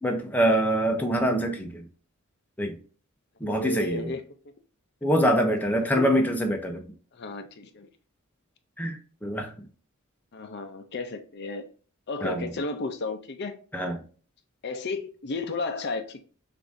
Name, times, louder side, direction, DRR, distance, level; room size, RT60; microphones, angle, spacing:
voice 1, 0.0-1.8 2.6-2.8 3.4-4.1 5.0-6.8 8.8-9.5 12.2-12.5 13.7-14.0, equal, 10° left, 0.6 m, -25 dB
voice 2, 3.5-4.2 5.2-5.3 6.0-6.1 7.1-7.9 10.3-11.6 12.1-13.6 14.6-16.2, left 3 dB, 50° left, 0.5 m, -33 dB
6.7 x 2.6 x 2.6 m
head